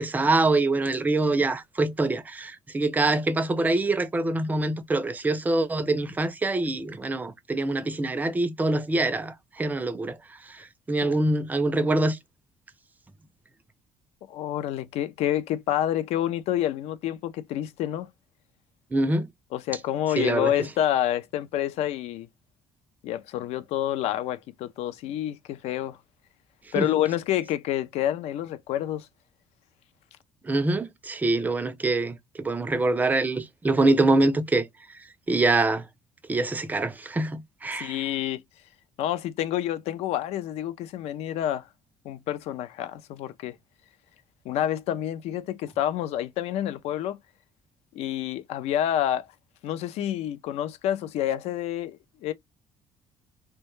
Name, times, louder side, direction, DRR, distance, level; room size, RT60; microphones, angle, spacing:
voice 1, 0.0-10.2 10.5-12.2 18.9-19.3 20.2-20.5 26.8-26.9 30.4-34.7 35.3-35.8 36.3-38.0, right 2 dB, 15° right, 0.4 m, -25 dB
voice 2, 14.3-18.1 19.5-22.3 23.0-26.0 26.7-29.1 37.7-38.4 39.0-41.7 42.0-43.6 44.4-47.2 47.9-49.3 49.6-52.3, left 11 dB, 75° left, 0.4 m, -28 dB
2.2 x 2.1 x 2.9 m
cardioid pair, 110°, 11 cm